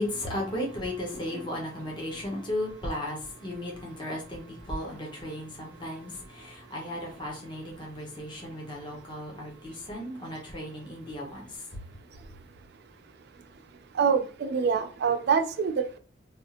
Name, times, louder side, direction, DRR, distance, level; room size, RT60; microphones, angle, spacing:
voice 1, 0.0-11.5, left 1 dB, 25° left, 0.9 m, -35 dB
voice 2, 13.9-16.0, right 6 dB, 60° right, 0.3 m, -25 dB
3.4 x 2.4 x 2.8 m
head